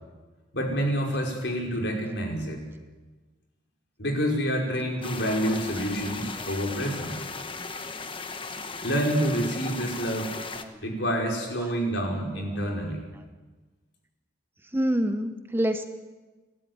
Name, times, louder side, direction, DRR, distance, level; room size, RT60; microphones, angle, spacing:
voice 1, 0.5-2.6 4.0-7.3 8.8-10.3 10.8-13.0, equal, 60° left, 0 dB, 5.4 m, -28 dB
sound 1, 5.0-10.6, left 4 dB, 25° left, 1.2 m, -37 dB
voice 2, 14.7-15.9, equal, 10° right, 7 dB, 0.9 m, -27 dB
28.5 x 12.5 x 9.6 m, 1.3 s
head